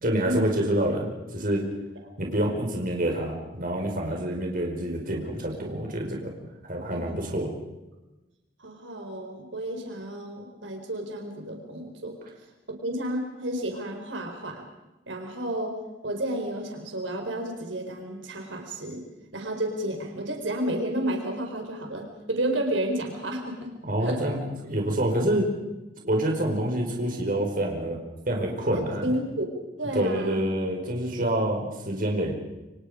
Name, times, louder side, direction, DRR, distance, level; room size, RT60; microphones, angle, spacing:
voice 1, 0.0-1.6 2.2-6.3 6.7-7.5 23.8-25.5 26.0-28.0 28.3-29.0 29.9-32.3, right 1 dB, 50° right, 1 dB, 5.0 m, -27 dB
voice 2, 8.6-12.1 12.7-14.6 15.1-15.8 16.0-19.0 19.3-23.7 24.0-24.2 29.0-29.5 29.8-30.4, right 1 dB, 85° right, 3 dB, 4.6 m, -31 dB
29.0 x 25.5 x 5.1 m, 1.0 s
head